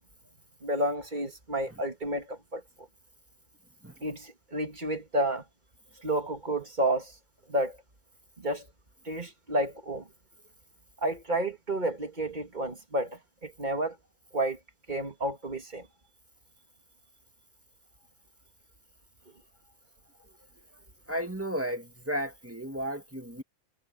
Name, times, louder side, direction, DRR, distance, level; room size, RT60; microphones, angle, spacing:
voice 1, 0.6-2.9 4.0-5.4 6.0-7.2 7.5-7.8 8.4-8.7 9.0-10.1 11.0-14.0 14.3-14.6 14.9-15.9, right 1 dB, 35° right, 2.5 m, -31 dB
voice 2, 21.1-23.4, equal, 10° right, 2.0 m, -33 dB
omnidirectional pair, 1.5 m